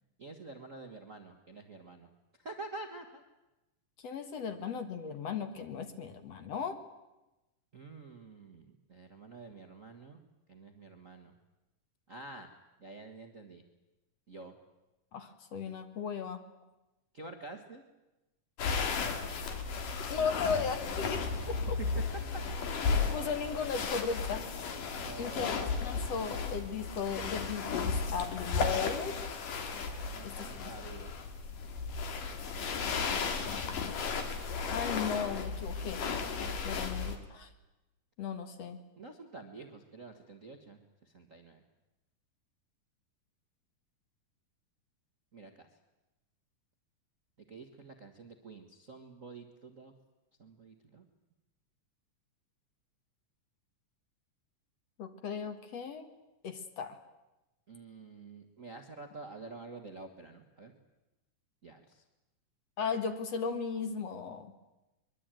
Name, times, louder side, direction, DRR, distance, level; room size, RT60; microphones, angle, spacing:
voice 1, 0.2-2.1 2.3-3.2 7.7-10.2 10.5-11.3 12.1-12.5 12.8-13.6 14.3-14.5 17.1-17.8 20.2-20.4 21.8-21.9 22.3-22.4 25.0-25.8 30.1-31.1 36.8-37.0 39.0-41.6 45.3-45.7 47.5-49.9 50.4-51.0 57.7-60.7 61.6-62.0, right 3 dB, 35° right, 5 dB, 1.3 m, -48 dB
voice 2, 4.0-6.8 15.1-16.4 20.1-21.8 23.1-24.5 25.2-25.5 25.8-29.2 30.2-30.7 33.5-33.6 33.8-34.0 34.7-36.0 36.6-37.5 38.2-38.8 55.0-56.1 56.4-57.0 62.8-64.5, left 6 dB, 55° left, 8 dB, 2.4 m, -36 dB
sound 1, 18.6-37.2, left 5 dB, 80° left, 3.7 m, -34 dB
23.5 x 22.5 x 9.1 m, 1.0 s
omnidirectional pair, 3.7 m